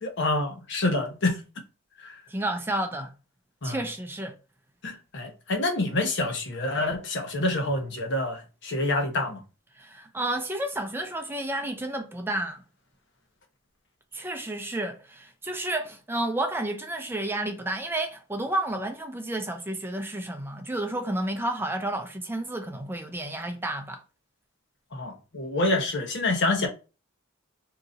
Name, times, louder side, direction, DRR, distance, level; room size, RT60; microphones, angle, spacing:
voice 1, 0.0-1.4 2.0-2.1 3.6-3.7 4.8-9.4 24.9-26.7, left 2 dB, 60° left, 0.9 m, -27 dB
voice 2, 2.3-3.1 3.6-4.3 9.8-12.6 14.1-24.0, right 1 dB, 10° right, 0.4 m, -31 dB
2.8 x 2.6 x 3.8 m
head